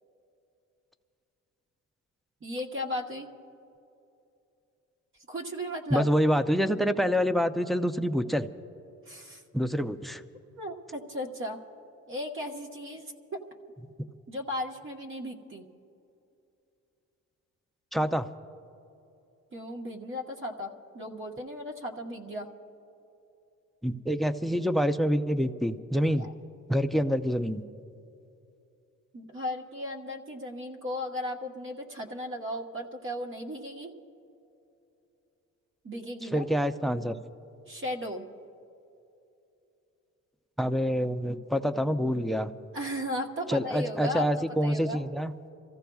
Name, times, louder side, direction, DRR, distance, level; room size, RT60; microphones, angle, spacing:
voice 1, 2.4-3.3 5.3-6.1 9.1-9.4 10.6-11.6 12.1-13.4 14.3-15.6 19.5-22.5 26.2-26.3 29.1-33.9 35.8-36.4 37.7-38.3 42.7-44.3 44.6-45.0, left 1 dB, 40° right, 1 dB, 1.3 m, -36 dB
voice 2, 5.9-8.5 9.5-10.2 17.9-18.3 23.8-26.3 26.7-27.6 36.3-37.2 40.6-42.5 43.5-45.3, equal, ahead, 10 dB, 0.5 m, -26 dB
30.0 x 15.0 x 2.3 m, 2.8 s
cardioid pair, 90°, 30 cm